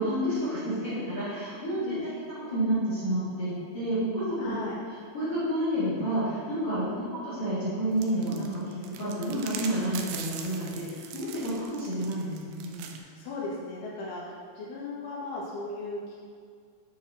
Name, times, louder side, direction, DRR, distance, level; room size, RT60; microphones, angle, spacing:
voice 1, 0.0-2.0 2.3-4.5 5.1-12.9, right 1 dB, 45° left, -13 dB, 2.0 m, -30 dB
voice 2, 4.4-4.8 6.8-7.0 12.9-16.2, left 2 dB, 90° left, -6 dB, 4.0 m, -37 dB
sound 1, 8.0-13.0, right 7 dB, 85° right, 2.5 m, -42 dB
9.1 x 6.6 x 2.7 m, 2.1 s
omnidirectional pair, 5.5 m